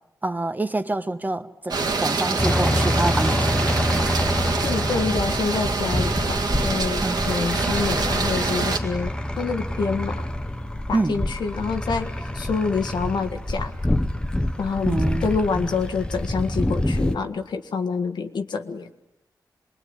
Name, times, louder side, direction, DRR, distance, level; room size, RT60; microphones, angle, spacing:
voice 1, 0.2-4.3 7.0-7.3 10.9-11.2 14.8-15.3 15.5-15.7, right 2 dB, 25° right, 1.3 m, -27 dB
sound 1, 1.7-8.8, right 4 dB, 65° right, 2.1 m, -26 dB
sound 2, 2.4-17.1, left 1 dB, 10° left, 1.1 m, -26 dB
voice 2, 4.6-10.2 10.9-13.7 14.6-18.9, left 5 dB, 85° left, 1.6 m, -27 dB
25.0 x 21.5 x 9.7 m
cardioid pair, 75°, 7 cm